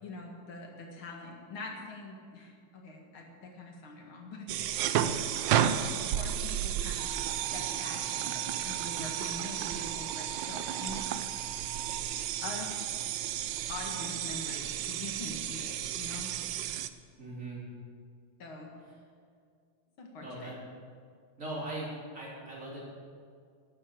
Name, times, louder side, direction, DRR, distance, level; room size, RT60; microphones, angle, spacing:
voice 1, 0.0-5.2 5.6-11.3 12.4-12.9 13.7-16.3 18.4-18.7 20.0-20.5, left 2 dB, 85° left, 1 dB, 2.8 m, -44 dB
sound 1, 4.5-16.9, right 10 dB, 75° right, 1.2 m, -33 dB
sound 2, 7.0-12.0, right 11 dB, 90° right, 1.5 m, -45 dB
voice 2, 17.2-17.6 20.2-20.5 21.4-21.9 22.1-22.8, right 2 dB, 35° right, -6 dB, 4.2 m, -39 dB
12.5 x 8.6 x 8.6 m, 2.2 s
omnidirectional pair, 2.2 m